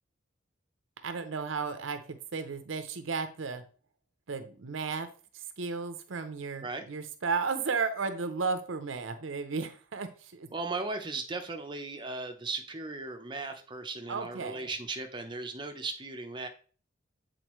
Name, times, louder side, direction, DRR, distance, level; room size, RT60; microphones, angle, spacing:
voice 1, 1.0-3.6 4.3-5.1 5.6-10.5 14.1-14.7, right 4 dB, 90° right, 8 dB, 0.7 m, -34 dB
voice 2, 10.5-16.5, right 3 dB, 25° right, 5 dB, 0.7 m, -37 dB
7.9 x 4.0 x 3.1 m, 0.40 s
head